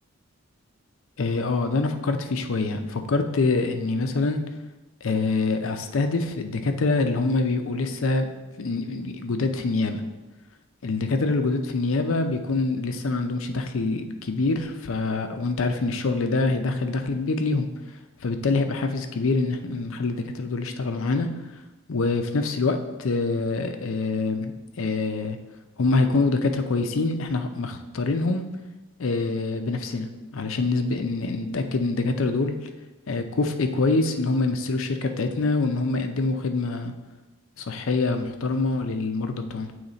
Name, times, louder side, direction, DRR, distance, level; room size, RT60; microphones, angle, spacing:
voice 1, 1.2-4.4 5.0-8.3 8.6-10.0 10.8-17.7 18.2-21.3 21.9-25.4 25.8-28.4 29.0-30.1 30.3-32.5 33.1-36.9 37.6-39.7, left 3 dB, 70° left, 7 dB, 0.5 m, -25 dB
8.6 x 3.2 x 3.9 m, 1.1 s
head